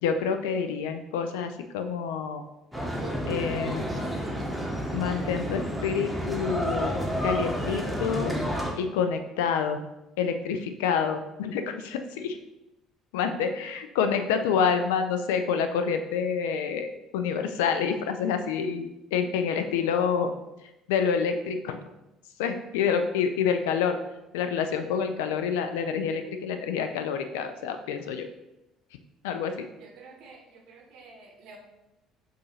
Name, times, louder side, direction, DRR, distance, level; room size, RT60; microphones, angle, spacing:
voice 1, 0.0-2.4 3.3-4.0 4.9-6.9 7.2-8.4 8.8-9.8 10.2-12.4 13.1-20.3 20.9-21.9 22.4-24.0 24.3-28.3 29.2-29.7, left 6 dB, 65° left, 8 dB, 0.3 m, -27 dB
sound 1, 2.7-8.7, equal, 5° left, 0.9 m, -30 dB
voice 2, 29.8-31.6, right 4 dB, 55° right, 2 dB, 0.8 m, -50 dB
7.2 x 2.4 x 2.8 m, 0.93 s
figure-of-eight pair, 55°, 0 cm